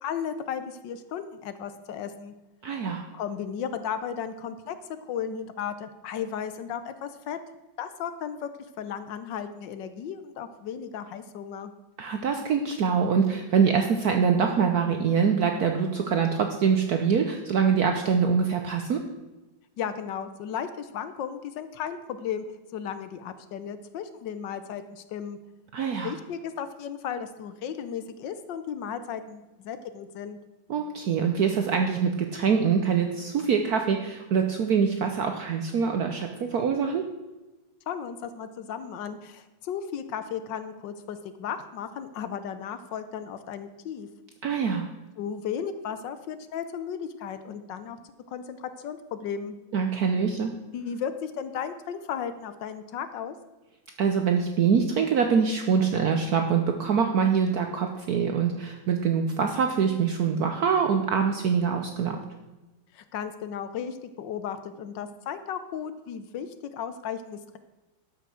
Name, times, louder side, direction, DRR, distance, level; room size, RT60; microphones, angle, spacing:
voice 1, 0.0-2.3 3.1-4.8 5.1-7.4 7.8-8.5 8.8-11.7 19.8-22.4 22.7-25.4 26.0-30.4 37.9-44.1 45.2-48.0 48.3-49.6 50.7-53.3 62.9-67.6, left 8 dB, 70° left, 11 dB, 1.3 m, -35 dB
voice 2, 2.6-3.0 12.0-19.0 25.7-26.1 30.7-37.1 44.4-44.9 49.7-50.5 54.0-62.2, right 6 dB, 60° right, 5 dB, 1.1 m, -24 dB
12.5 x 5.9 x 6.2 m, 1.1 s
omnidirectional pair, 2.1 m